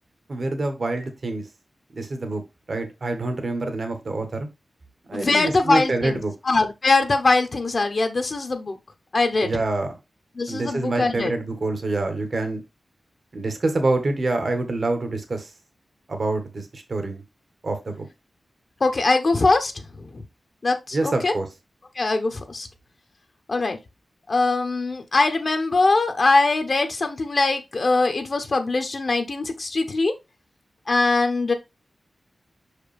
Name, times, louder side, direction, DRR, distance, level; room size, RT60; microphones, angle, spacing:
voice 1, 0.3-1.4 1.9-2.4 2.7-4.5 5.1-6.3 9.4-9.9 10.5-12.6 13.3-15.5 16.1-17.2 17.6-18.1 20.9-21.5, right 2 dB, 50° right, 1.4 m, -26 dB
voice 2, 5.1-8.8 9.1-9.5 10.4-11.3 18.8-19.7 20.6-21.3 22.0-22.7 23.5-23.8 24.3-30.1 30.9-31.5, left 3 dB, 45° left, 0.9 m, -22 dB
6.0 x 4.9 x 3.4 m
wide cardioid pair, 120°, 0 cm